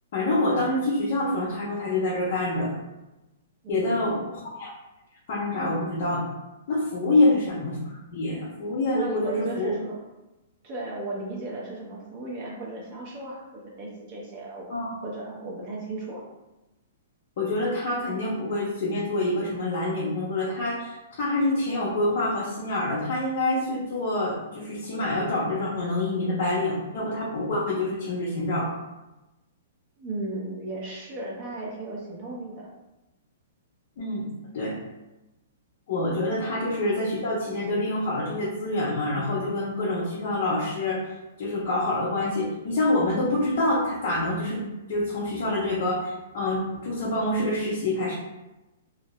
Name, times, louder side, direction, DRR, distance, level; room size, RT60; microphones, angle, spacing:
voice 1, 0.1-2.8 3.7-4.7 5.3-6.2 6.7-9.7 14.7-14.9 17.4-28.7 34.0-34.3 34.5-34.8 35.9-48.2, left 2 dB, 45° left, -5 dB, 0.5 m, -26 dB
voice 2, 3.6-4.3 7.0-7.3 8.9-10.0 10.6-14.6 15.0-16.2 30.0-32.7, right 2 dB, 30° right, -4 dB, 0.7 m, -35 dB
2.5 x 2.1 x 2.8 m, 1.0 s
hypercardioid pair, 170°, 0 cm